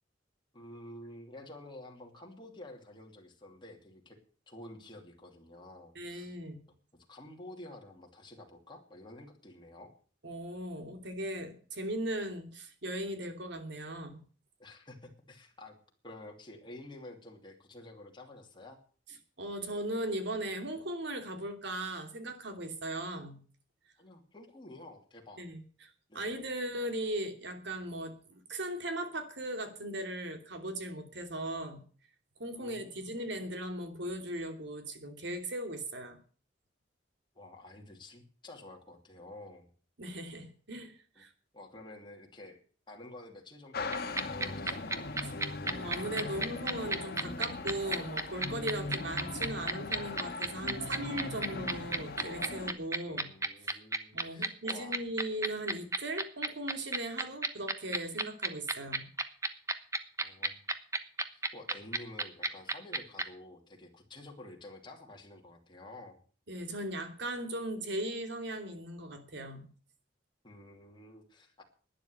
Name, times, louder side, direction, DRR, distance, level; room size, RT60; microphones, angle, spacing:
voice 1, 0.5-4.2 4.5-6.4 6.9-9.9 14.6-15.8 16.0-18.8 24.0-25.4 26.1-26.4 32.6-33.4 37.3-39.7 41.1-41.2 41.5-45.0 53.1-55.0 60.2-60.6 61.3-66.2 70.4-71.6, left 1 dB, 25° left, 1 dB, 2.8 m, -50 dB
voice 2, 5.9-6.6 10.2-14.2 19.4-23.4 25.4-31.8 32.4-36.2 40.0-41.3 45.2-45.3 45.6-53.3 54.1-59.1 66.5-69.7, right 1 dB, 65° right, 6 dB, 2.9 m, -38 dB
sound 1, 43.7-52.7, left 3 dB, 55° left, 1.6 m, -40 dB
sound 2, 43.9-63.2, right 3 dB, 15° right, 1.0 m, -31 dB
11.5 x 10.0 x 7.9 m, 0.43 s
head